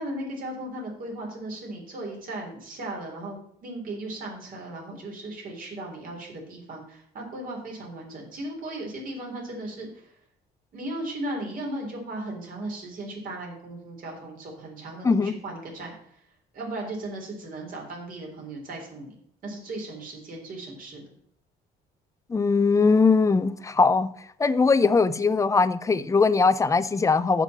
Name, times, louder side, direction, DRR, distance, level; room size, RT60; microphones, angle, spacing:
voice 1, 0.0-10.1 10.7-16.2 16.5-21.0, right 1 dB, 55° right, 3.7 m, -36 dB
voice 2, 22.3-24.1 24.4-27.4, left 4 dB, 20° left, 0.5 m, -20 dB
7.2 x 5.8 x 7.4 m
cardioid pair, 110°, 17 cm